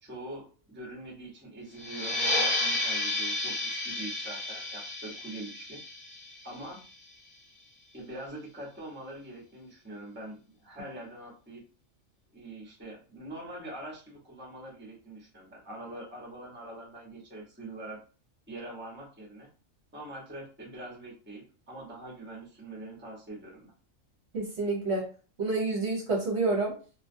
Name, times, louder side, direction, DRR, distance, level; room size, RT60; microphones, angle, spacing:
voice 1, 0.0-5.8 6.4-6.8 7.9-11.6 12.3-18.0 18.5-19.5 19.9-23.7, right 1 dB, 10° right, -3 dB, 0.7 m, -43 dB
sound 1, 1.8-7.0, left 2 dB, 40° left, 0.8 m, -32 dB
voice 2, 24.3-25.1 25.4-26.8, right 3 dB, 60° right, -2 dB, 0.9 m, -28 dB
2.4 x 2.3 x 2.5 m, 0.37 s
omnidirectional pair, 1.4 m